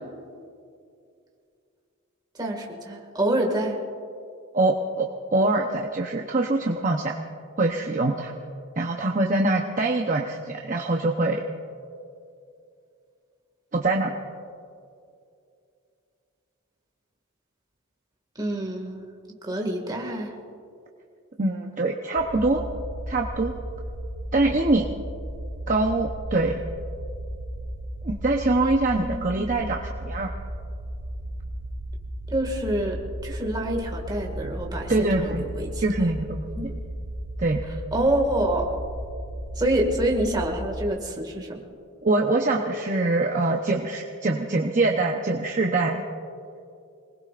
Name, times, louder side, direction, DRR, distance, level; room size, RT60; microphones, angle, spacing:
voice 1, 2.3-3.8 18.4-19.1 19.4-20.4 28.9-29.5 32.3-35.8 36.6-36.7 37.9-38.7 39.6-41.6, right 1 dB, 20° right, 0 dB, 2.0 m, -27 dB
voice 2, 4.5-7.2 7.6-8.3 8.8-11.4 13.7-14.1 21.4-22.6 23.1-23.6 24.3-24.9 25.7-26.6 28.0-30.3 34.9-35.5 35.8-36.5 37.4-37.6 42.0-46.0, right 2 dB, 35° right, 1 dB, 0.8 m, -24 dB
sound 1, 22.2-40.8, right 1 dB, 80° right, 1.7 m, -35 dB
26.5 x 20.0 x 2.5 m, 2.5 s
head